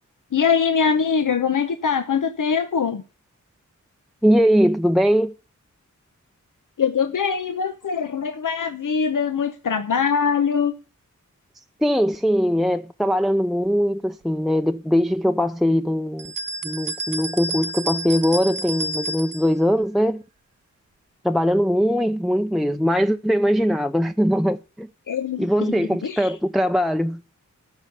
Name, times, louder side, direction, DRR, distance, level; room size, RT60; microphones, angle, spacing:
voice 1, 0.3-3.0 6.8-10.7 25.1-26.4, left 6 dB, 85° left, 1.0 m, -23 dB
voice 2, 4.2-5.3 11.8-16.3 16.6-20.2 21.2-24.9 25.4-27.2, equal, ahead, 0.6 m, -21 dB
sound 1, 16.2-19.5, right 2 dB, 80° right, 0.9 m, -30 dB
13.5 x 5.7 x 8.1 m
wide cardioid pair, 75°, 31 cm